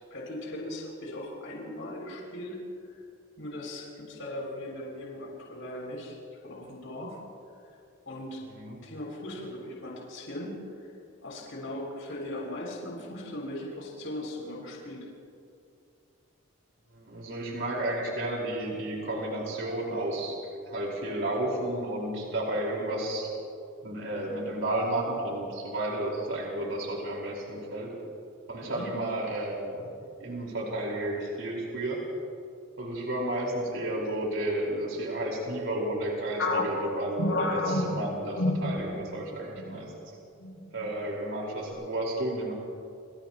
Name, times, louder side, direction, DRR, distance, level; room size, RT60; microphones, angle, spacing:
voice 1, 0.1-3.0 3.4-7.2 7.6-7.8 8.0-8.4 8.8-10.9 11.2-15.1 28.7-28.9, left 1 dB, 70° left, -3 dB, 6.6 m, -39 dB
voice 2, 16.9-20.4 20.7-23.3 23.8-27.9 28.5-29.9 30.2-32.1 32.8-39.9 40.7-42.5, right 1 dB, 65° right, -2 dB, 4.8 m, -32 dB
sound 1, 36.4-39.2 39.6-39.8 40.4-40.9, left 2 dB, 85° left, 7.2 m, -29 dB
30.0 x 29.5 x 3.1 m, 2.5 s
head